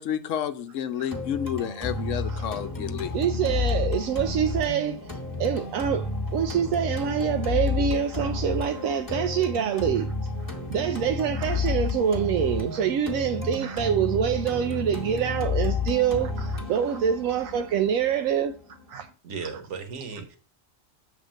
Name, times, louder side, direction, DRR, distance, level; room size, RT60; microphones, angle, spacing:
voice 1, 0.0-3.1, left 9 dB, 75° left, 0.9 m, -30 dB
sound 1, 1.1-19.1, left 4 dB, 15° left, 1.2 m, -31 dB
voice 2, 3.1-10.1 10.4-18.5 18.9-19.1 19.4-19.6, right 8 dB, 90° right, 1.0 m, -26 dB
voice 3, 19.2-20.4, right 5 dB, 65° right, 1.4 m, -36 dB
6.5 x 3.6 x 6.1 m
omnidirectional pair, 1.4 m